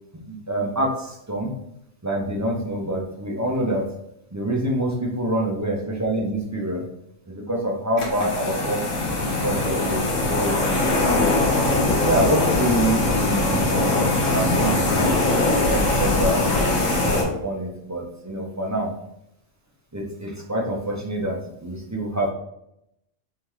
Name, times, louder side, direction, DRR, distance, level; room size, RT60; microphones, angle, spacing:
voice 1, 0.3-1.5 2.0-3.9 4.3-6.8 7.3-8.8 9.4-10.6 12.0-15.3 15.7-19.0 19.9-22.3, right 1 dB, 25° right, -1 dB, 0.4 m, -26 dB
sound 1, 8.0-17.2, left 2 dB, 80° left, 1.4 m, -21 dB
3.6 x 3.4 x 3.1 m, 0.78 s
omnidirectional pair, 1.3 m